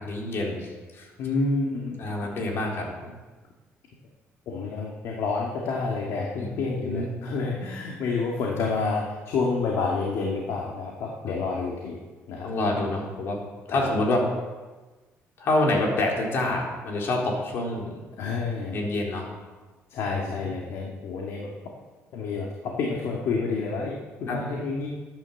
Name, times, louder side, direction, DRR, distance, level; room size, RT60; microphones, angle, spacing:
voice 1, 0.0-1.1 2.0-3.1 6.4-7.1 11.2-11.4 12.4-13.4 13.7-14.2 15.4-18.0 18.7-19.3 20.1-20.5 24.3-24.4, left 2 dB, 55° left, -1 dB, 4.1 m, -27 dB
voice 2, 1.2-2.0 4.5-12.0 12.3-12.5 13.7-13.9 18.2-18.8 19.9-21.5 22.1-23.9 24.2-24.9, left 4 dB, 70° left, -2 dB, 2.3 m, -29 dB
13.0 x 10.5 x 7.3 m, 1.3 s
cardioid pair, 145°, 5 cm